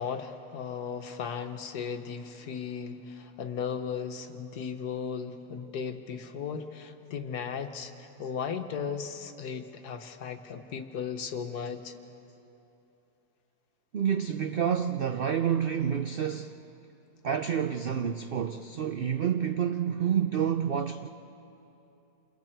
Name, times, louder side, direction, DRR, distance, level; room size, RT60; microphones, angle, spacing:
voice 1, 0.0-7.9 8.2-11.9, left 6 dB, 75° left, 6 dB, 1.7 m, -36 dB
voice 2, 13.9-16.6 17.2-21.1, right 8 dB, 85° right, 8 dB, 0.5 m, -28 dB
28.0 x 28.0 x 4.6 m, 2.9 s
omnidirectional pair, 1.7 m